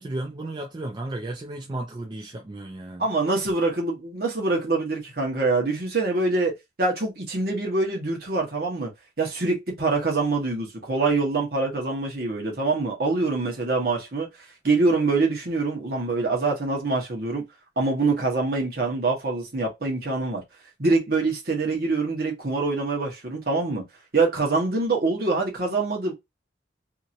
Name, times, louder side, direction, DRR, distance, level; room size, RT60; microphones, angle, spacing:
voice 1, 0.0-3.0, right 2 dB, 25° right, 0.4 m, -34 dB
voice 2, 3.0-6.5 6.8-8.9 9.2-14.3 14.6-17.4 17.8-20.4 20.8-23.8 24.1-26.1, right 3 dB, 55° right, 1.3 m, -24 dB
2.9 x 2.8 x 2.5 m
head